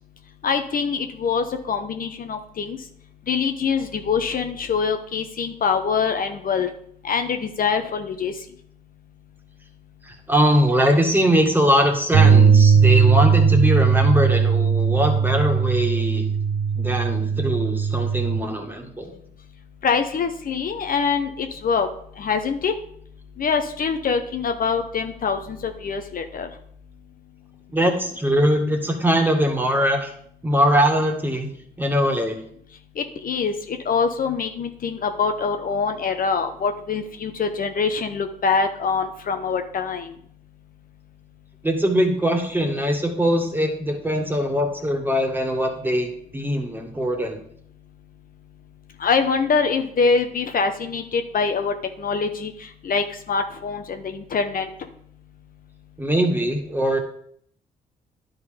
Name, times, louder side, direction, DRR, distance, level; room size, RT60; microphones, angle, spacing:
voice 1, 0.4-2.8 3.3-6.7 7.0-8.3 19.8-21.9 22.2-22.7 23.4-26.5 33.0-40.1 49.0-52.5 52.8-54.7, left 5 dB, 55° left, 7 dB, 0.8 m, -24 dB
voice 2, 10.1-16.3 16.8-19.1 27.7-30.1 30.4-31.5 31.8-32.4 41.6-47.4 56.0-57.0, equal, 10° right, 3 dB, 1.9 m, -21 dB
sound 1, 12.1-18.4, right 6 dB, 75° right, 1.2 m, -18 dB
10.5 x 4.0 x 5.1 m, 0.66 s
supercardioid pair, 55°, 18 cm